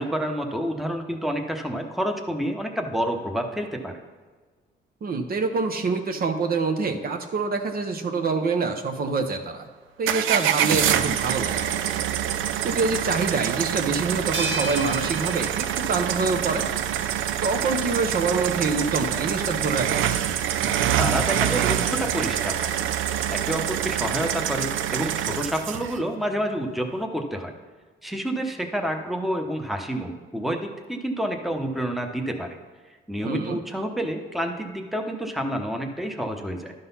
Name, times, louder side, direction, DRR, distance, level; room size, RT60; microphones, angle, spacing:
voice 1, 0.0-4.0 21.0-22.9 23.3-27.5 28.0-32.6 33.1-36.7, equal, ahead, 4 dB, 0.9 m, -29 dB
voice 2, 5.0-9.7 10.0-11.9 12.6-16.7 17.4-20.2 33.2-33.6, right 4 dB, 50° right, 6 dB, 0.8 m, -26 dB
sound 1, 10.1-26.0, right 10 dB, 80° right, 0.5 m, -26 dB
sound 2, 14.3-16.8, right 2 dB, 65° right, 1.9 m, -34 dB
11.5 x 4.0 x 5.5 m, 1.4 s
cardioid pair, 90°, 20 cm